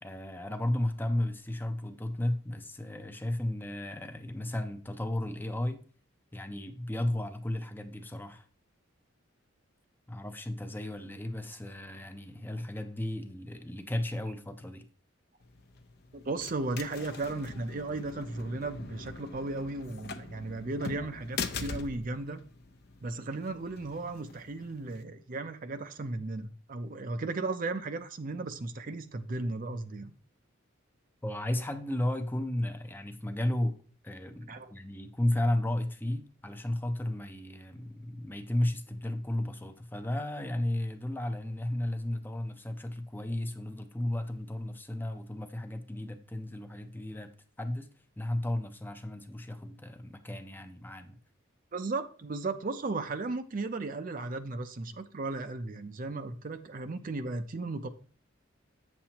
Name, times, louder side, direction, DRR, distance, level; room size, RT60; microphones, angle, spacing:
voice 1, 0.0-5.8 6.3-8.5 10.1-14.9 31.2-33.8 34.0-47.3 47.6-47.9 48.2-51.2, left 1 dB, 10° left, 0.5 m, -34 dB
sound 1, 15.4-25.0, left 4 dB, 55° left, 0.6 m, -43 dB
voice 2, 16.1-22.4 23.0-30.1 34.5-34.7 51.7-57.9, right 3 dB, 40° right, 0.5 m, -35 dB
8.6 x 7.2 x 2.9 m
head